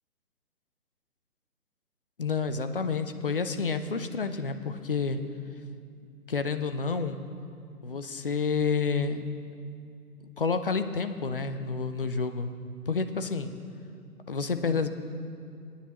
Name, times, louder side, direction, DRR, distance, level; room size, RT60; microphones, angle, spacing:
voice 1, 2.2-5.2 6.3-7.2 7.8-9.2 10.4-12.5 12.9-13.5 14.3-14.9, left 5 dB, 35° left, 9 dB, 0.5 m, -29 dB
25.0 x 9.9 x 3.0 m, 2.5 s
figure-of-eight pair, 145°, 47 cm